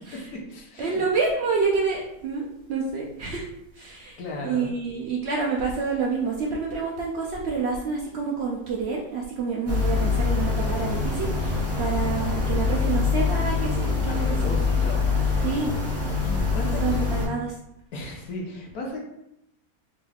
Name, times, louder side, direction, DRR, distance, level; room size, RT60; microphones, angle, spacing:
voice 1, 0.1-1.0 4.0-4.7 13.6-15.5 16.2-17.0 17.9-19.0, left 1 dB, 80° left, 0 dB, 1.3 m, -36 dB
voice 2, 0.8-3.5 3.8-4.2 4.4-14.6 15.4-15.7 16.8-17.5, right 4 dB, 65° right, -2 dB, 0.6 m, -28 dB
sound 1, 9.7-17.3, left 4 dB, 10° right, 0.8 m, -24 dB
3.6 x 3.3 x 2.3 m, 0.82 s
omnidirectional pair, 1.5 m